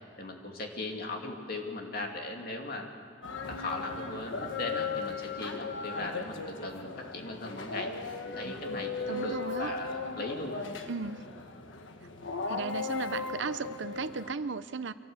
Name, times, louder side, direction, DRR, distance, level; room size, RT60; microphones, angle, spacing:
voice 1, 0.2-2.9 3.5-7.9 8.2-10.7, left 2 dB, 50° left, 2 dB, 2.6 m, -38 dB
sound 1, 3.2-14.3, left 4 dB, 85° left, 1.4 m, -37 dB
voice 2, 9.1-9.7 10.9-11.3 12.5-14.9, right 4 dB, 70° right, 13 dB, 0.7 m, -35 dB
25.0 x 18.0 x 8.0 m, 2.2 s
head